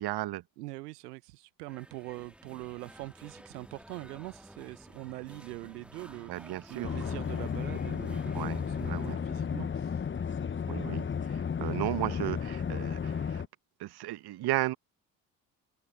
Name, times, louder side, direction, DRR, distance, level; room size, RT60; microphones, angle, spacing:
voice 1, 0.0-0.4 6.3-7.0 8.3-9.2 10.7-13.4 13.8-14.7, right 15 dB, 50° right, 1.4 m, -35 dB
voice 2, 0.6-10.1, right 22 dB, 75° right, 1.1 m, -43 dB
sound 1, 1.7-9.1, equal, ahead, 2.0 m, -52 dB
sound 2, 6.8-13.5, left 7 dB, 25° left, 1.1 m, -33 dB
figure-of-eight pair, 50°, 48 cm